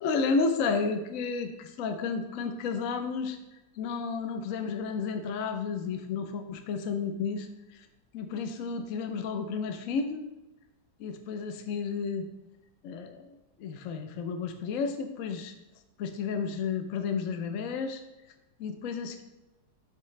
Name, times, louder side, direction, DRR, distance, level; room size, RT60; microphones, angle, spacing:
voice 1, 0.0-3.4 3.8-7.5 7.7-7.9 8.1-10.3 11.0-12.3 12.8-13.3 13.6-15.5 16.0-18.0 18.6-19.2, left 5 dB, 65° left, 7 dB, 0.8 m, -32 dB
10.5 x 3.6 x 3.2 m, 0.97 s
omnidirectional pair, 2.1 m